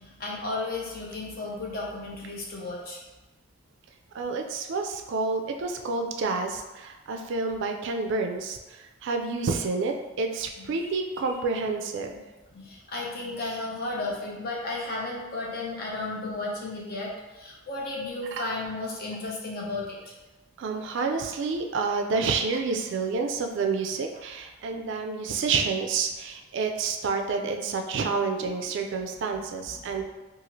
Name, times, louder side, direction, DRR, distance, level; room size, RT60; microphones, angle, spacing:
voice 1, 0.0-3.0 12.5-17.1 17.4-20.0 24.7-24.8 28.4-28.5 29.3-29.4 29.9-30.0, left 2 dB, 50° left, -3 dB, 0.6 m, -34 dB
voice 2, 4.1-12.2 18.2-18.4 20.6-30.0, right 4 dB, 60° right, 3 dB, 0.3 m, -29 dB
2.7 x 2.4 x 2.9 m, 1.1 s
head